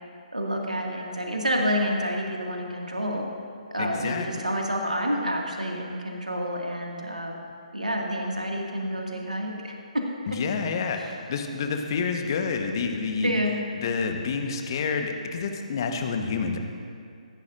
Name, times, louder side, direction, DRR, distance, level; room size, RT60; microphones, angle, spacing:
voice 1, 0.3-3.3 3.7-7.4 7.7-10.0 10.3-10.4 13.2-13.6, equal, 80° right, 0 dB, 2.1 m, -28 dB
voice 2, 3.8-4.3 10.3-13.3 13.8-16.6, left 5 dB, 35° left, 5 dB, 1.2 m, -28 dB
25.0 x 11.5 x 2.6 m, 2.3 s
figure-of-eight pair, 140°, 4 cm